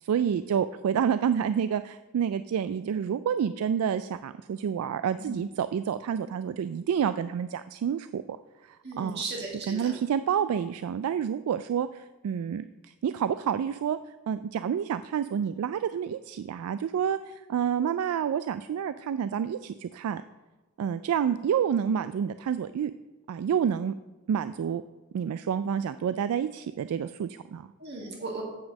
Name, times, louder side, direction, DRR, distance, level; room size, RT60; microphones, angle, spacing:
voice 1, 0.0-8.2 8.6-9.2 9.7-14.0 14.3-20.2 20.8-22.9 23.3-23.9 24.3-24.8 25.1-27.7, right 8 dB, 85° right, 13 dB, 0.3 m, -29 dB
voice 2, 8.8-9.9 27.8-28.4, right 3 dB, 50° right, -2 dB, 2.0 m, -36 dB
7.3 x 6.1 x 7.4 m, 1.2 s
head